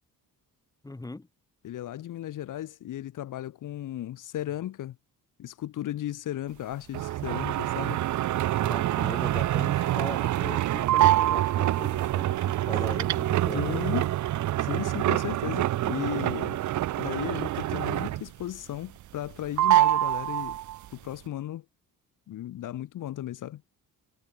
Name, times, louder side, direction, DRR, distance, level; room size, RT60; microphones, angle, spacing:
voice 1, 0.8-1.3 8.6-13.9, left 2 dB, 10° left, 4.8 m, -40 dB
voice 2, 1.6-5.0 5.4-8.0 13.5-14.1 14.6-16.6 17.0-20.6 20.9-21.6 22.3-23.6, left 12 dB, 65° left, 2.5 m, -35 dB
sound 1, 6.9-18.4 18.7-19.3 19.6-20.9, right 14 dB, 60° right, 0.8 m, -26 dB
cardioid pair, 175°, 34 cm